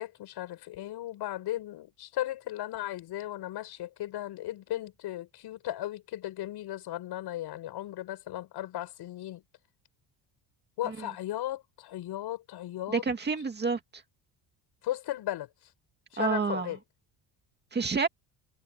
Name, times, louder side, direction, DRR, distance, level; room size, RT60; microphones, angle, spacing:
voice 1, 0.0-9.4 10.8-13.0 14.8-15.5 16.1-16.8, left 14 dB, 65° left, 7.2 m, -36 dB
voice 2, 12.9-13.8 16.2-16.7 17.7-18.1, right 5 dB, 25° right, 2.1 m, -28 dB
cardioid pair, 150°, 44 cm